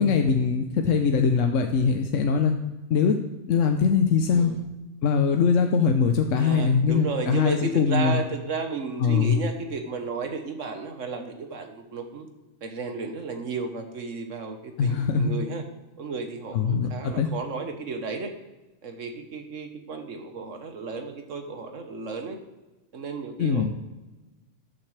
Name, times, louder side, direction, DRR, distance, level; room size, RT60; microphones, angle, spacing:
voice 1, 0.0-2.6 2.9-3.2 3.5-4.5 5.0-8.2 9.0-9.4 14.8-15.3 16.5-17.3 23.4-23.7, left 6 dB, 80° left, 5 dB, 1.1 m, -22 dB
voice 2, 6.4-12.3 12.6-15.6 16.0-18.3 18.8-22.4 22.9-23.7, right 4 dB, 85° right, 5 dB, 1.6 m, -33 dB
13.5 x 8.9 x 3.3 m, 1.1 s
omnidirectional pair, 1.3 m